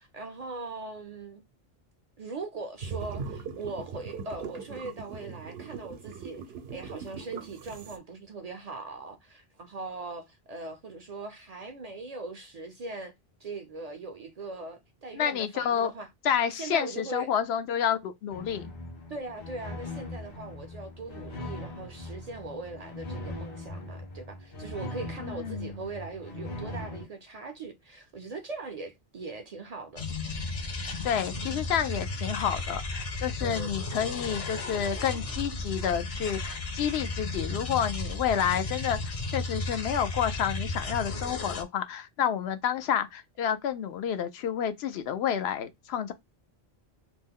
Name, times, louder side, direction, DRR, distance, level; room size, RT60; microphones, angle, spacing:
voice 1, 0.0-1.4 2.2-6.4 6.7-13.1 13.4-16.1 16.6-17.3 19.1-30.0 33.4-33.7, right 3 dB, 50° right, 0.5 m, -40 dB
sound 1, 2.8-8.0, right 5 dB, 80° right, 0.8 m, -40 dB
voice 2, 15.1-15.9 16.2-18.7 25.2-25.7 31.0-46.1, left 8 dB, 85° left, 0.8 m, -29 dB
sound 2, 18.3-27.0, left 1 dB, 60° left, 1.3 m, -40 dB
sound 3, 30.0-41.6, left 3 dB, 45° left, 0.6 m, -34 dB
3.0 x 2.1 x 3.5 m
omnidirectional pair, 1.0 m